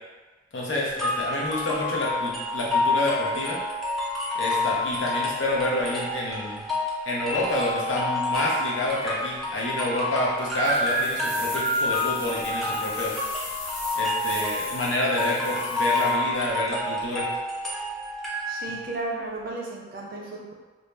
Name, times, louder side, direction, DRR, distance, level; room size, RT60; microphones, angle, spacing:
voice 1, 0.5-3.6 4.3-6.6 7.1-13.2 13.9-17.3, left 1 dB, 75° left, -4 dB, 0.7 m, -28 dB
sound 1, 1.0-18.9, left 2 dB, ahead, 0.4 m, -28 dB
sound 2, 10.6-16.1, left 1 dB, 35° left, 1.0 m, -39 dB
voice 2, 18.5-20.5, right 2 dB, 50° right, -3 dB, 0.5 m, -34 dB
2.6 x 2.0 x 3.2 m, 1.3 s
head